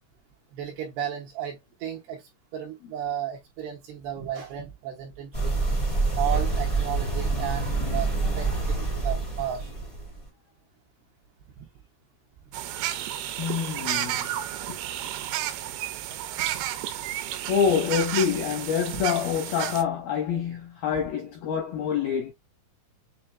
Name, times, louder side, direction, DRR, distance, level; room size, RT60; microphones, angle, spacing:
voice 1, 0.5-5.6 6.2-9.7 11.6-11.7 16.3-16.7 18.9-19.0, right 10 dB, 70° right, 2.8 m, -34 dB
sound 1, 5.3-10.3, right 3 dB, 40° left, 0.4 m, -26 dB
sound 2, 12.5-19.8, right 12 dB, 90° right, 3.3 m, -32 dB
voice 2, 13.4-14.3 14.7-14.8 17.5-22.3, left 7 dB, 75° left, 2.2 m, -26 dB
7.9 x 2.7 x 2.3 m
omnidirectional pair, 5.7 m